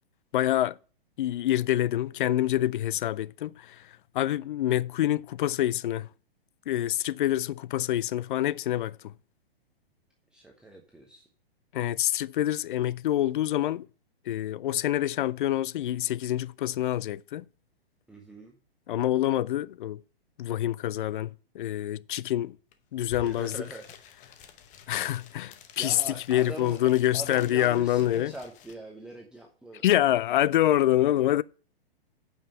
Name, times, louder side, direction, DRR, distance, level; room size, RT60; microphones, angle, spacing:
voice 1, 0.3-0.8 1.2-3.8 4.1-6.1 6.7-9.1 11.7-13.9 14.3-17.4 18.9-20.0 20.4-22.6 22.9-23.5 24.9-26.0 26.3-28.3 29.8-31.4, left 13 dB, 55° left, 0.4 m, -26 dB
voice 2, 10.3-11.3 18.1-18.5 23.1-23.8 25.8-29.9, right 1 dB, 5° right, 1.0 m, -42 dB
sound 1, 22.7-22.8 23.0-28.7, left 7 dB, 25° left, 0.9 m, -50 dB
8.8 x 5.6 x 5.5 m
hypercardioid pair, 120°, 30 cm